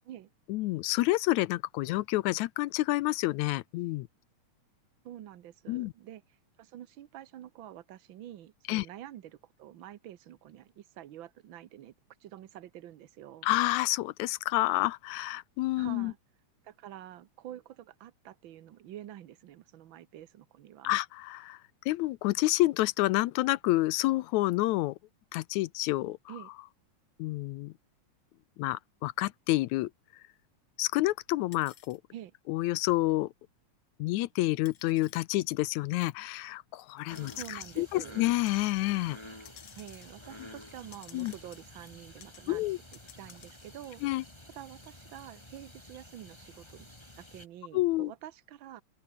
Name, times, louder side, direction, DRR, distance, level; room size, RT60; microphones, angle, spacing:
voice 1, 0.5-4.1 5.7-5.9 8.7-8.9 13.4-16.1 20.8-21.6 21.9-25.0 25.3-26.2 27.2-27.7 28.6-29.9 30.8-32.0 32.5-33.3 34.0-39.2 41.1-41.3 42.5-42.8 44.0-44.2 47.7-48.1, left 18 dB, 80° left, 1.9 m, -29 dB
voice 2, 5.0-11.9 12.2-13.5 15.8-16.2 16.6-21.0 26.3-26.5 32.1-32.3 37.3-38.2 39.7-42.6 43.2-44.0 44.5-46.9 47.2-48.8, right 12 dB, 85° right, 1.1 m, -47 dB
sound 1, 31.5-32.0 33.1-33.2 34.6-35.2 36.0-36.2 37.0-37.8 38.5-38.8 39.4-42.0 42.2-42.4 42.7-43.7, left 9 dB, 55° left, 1.3 m, -55 dB
sound 2, 37.1-47.5, left 1 dB, 10° left, 4.3 m, -51 dB
omnidirectional pair, 3.5 m